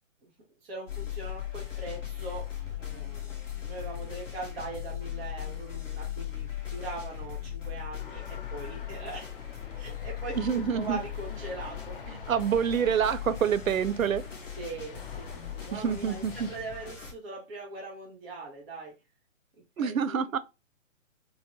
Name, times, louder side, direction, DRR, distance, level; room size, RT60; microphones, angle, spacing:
voice 1, 0.6-9.3 9.8-12.0 14.5-18.9 19.8-20.4, right 3 dB, ahead, 0.4 m, -41 dB
sound 1, 0.9-17.1, left 10 dB, 70° left, 1.1 m, -38 dB
sound 2, 8.0-16.6, left 5 dB, 45° left, 0.6 m, -48 dB
voice 2, 10.4-11.0 12.1-14.2 15.7-16.5 19.8-20.4, right 7 dB, 90° right, 0.5 m, -27 dB
3.8 x 2.1 x 3.0 m
figure-of-eight pair, 130°, 39 cm